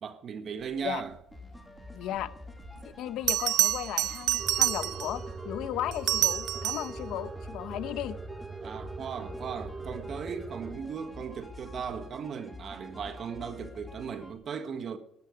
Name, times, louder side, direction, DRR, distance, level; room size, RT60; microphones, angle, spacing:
voice 1, 0.0-1.2 8.6-15.0, right 6 dB, 45° right, 1.5 m, -37 dB
sound 1, 1.3-14.3, left 2 dB, 10° left, 2.5 m, -47 dB
voice 2, 1.9-2.3 2.8-8.2, left 12 dB, 70° left, 0.9 m, -35 dB
Bell, 2.6-2.7 3.3-5.2 5.9-7.0 9.7-9.9, right 13 dB, 60° right, 0.7 m, -27 dB
sound 2, 4.4-10.7, right 3 dB, 20° right, 0.8 m, -41 dB
19.5 x 12.0 x 5.2 m
cardioid pair, 135°, 0 cm